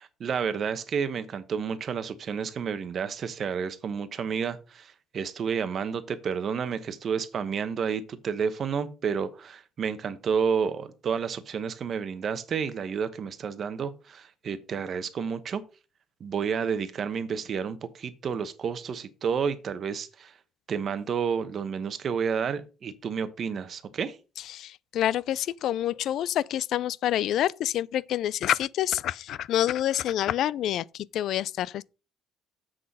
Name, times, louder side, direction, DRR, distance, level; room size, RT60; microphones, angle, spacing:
voice 1, 0.0-15.6 16.2-20.3 20.7-24.2, right 6 dB, 35° right, 1.0 m, -30 dB
voice 2, 24.5-31.8, left 12 dB, 55° left, 0.3 m, -27 dB
7.6 x 6.4 x 5.4 m
cardioid pair, 165°, 0 cm